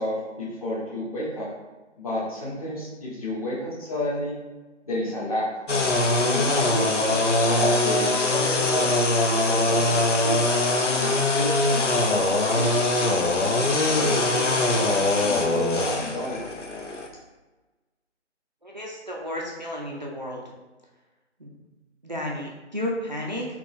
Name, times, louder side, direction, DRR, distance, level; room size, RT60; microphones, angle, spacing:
voice 1, 0.0-1.5 2.0-4.4 4.8-5.5 6.2-9.1 9.4-10.5 10.9-13.3 13.9-16.5, left 1 dB, 30° left, -7 dB, 1.1 m, -31 dB
sound 1, 5.7-17.1, left 2 dB, 80° left, 0.7 m, -22 dB
voice 2, 18.6-20.4 21.4-21.6 22.0-23.5, left 1 dB, 40° right, -2 dB, 0.4 m, -32 dB
3.8 x 2.9 x 3.0 m, 1.2 s
figure-of-eight pair, 150°, 36 cm